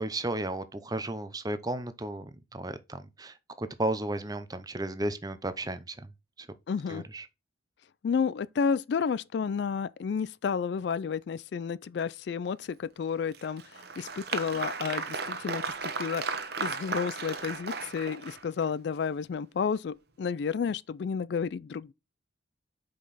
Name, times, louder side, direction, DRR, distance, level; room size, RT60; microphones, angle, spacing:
voice 1, 0.0-6.0 6.4-6.5 6.9-7.3, right 1 dB, 20° right, 0.6 m, -34 dB
voice 2, 6.7-7.0 8.0-16.3 16.6-21.9, left 6 dB, 60° left, 0.3 m, -31 dB
Applause, 13.3-18.6, right 4 dB, 55° right, 1.0 m, -35 dB
5.8 x 5.1 x 4.1 m
head